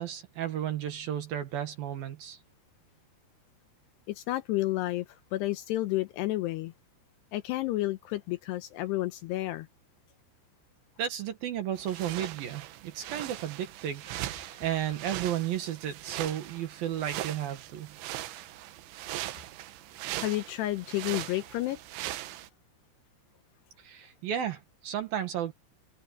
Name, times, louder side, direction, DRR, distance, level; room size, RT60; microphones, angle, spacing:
voice 1, 0.0-2.4 11.0-17.9 23.8-25.5, right 10 dB, 65° right, 2.8 m, -33 dB
voice 2, 4.1-5.1 5.3-6.7 7.3-9.7 14.5-14.6 20.2-21.8, left 16 dB, 80° left, 2.6 m, -31 dB
sound 1, 11.7-22.5, right 15 dB, 80° right, 3.4 m, -40 dB
omnidirectional pair, 5.4 m